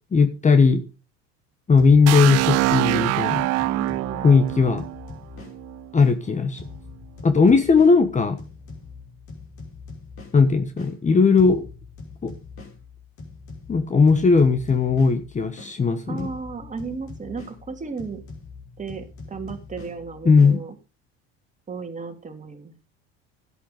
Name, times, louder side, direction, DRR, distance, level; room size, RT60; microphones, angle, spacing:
voice 1, 0.1-0.8 1.7-3.5 4.2-4.9 5.9-6.6 7.2-8.4 10.3-11.6 12.2-12.3 13.7-16.3 20.2-20.6, left 4 dB, 25° left, 11 dB, 1.2 m, -18 dB
sound 1, 1.8-6.2 6.6-11.0 11.4-15.8 16.2-20.6, left 4 dB, 45° left, 5.2 m, -42 dB
sound 2, 2.1-5.9, right 18 dB, 55° right, 0.5 m, -24 dB
voice 2, 3.6-4.3 16.1-18.2 18.8-20.8 21.7-22.8, right 5 dB, 25° right, 5 dB, 2.6 m, -34 dB
11.0 x 8.4 x 5.2 m, 0.32 s
supercardioid pair, 95°, 30 cm